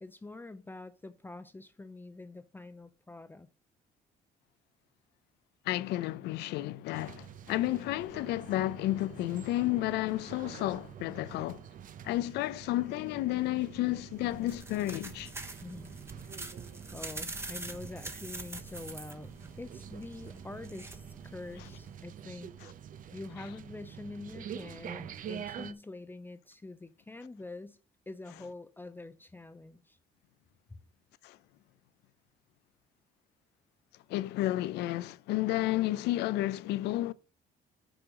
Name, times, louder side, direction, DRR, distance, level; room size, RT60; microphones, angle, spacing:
voice 1, 0.0-3.5 15.6-16.0 16.9-19.3 19.6-22.5 23.1-27.8 28.1-30.0, left 2 dB, 10° left, 0.5 m, -45 dB
voice 2, 5.7-11.6 12.0-15.3 31.2-31.4 34.1-37.1, left 16 dB, 80° left, 0.5 m, -31 dB
sound 1, 6.9-25.7, right 9 dB, 55° right, 0.7 m, -47 dB
sound 2, 14.1-22.0, right 2 dB, 15° right, 1.1 m, -45 dB
6.3 x 4.7 x 6.1 m
cardioid pair, 110°, 17 cm